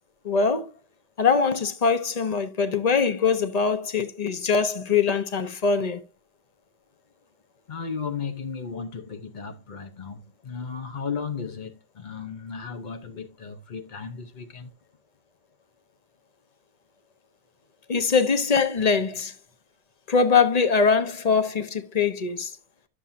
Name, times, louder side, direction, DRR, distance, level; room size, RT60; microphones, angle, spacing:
voice 1, 0.2-0.7 1.2-6.0 17.9-19.3 20.1-22.5, left 5 dB, 35° left, 0.6 m, -22 dB
voice 2, 7.7-14.7, left 5 dB, 75° left, 0.4 m, -35 dB
11.5 x 7.2 x 2.6 m
omnidirectional pair, 1.9 m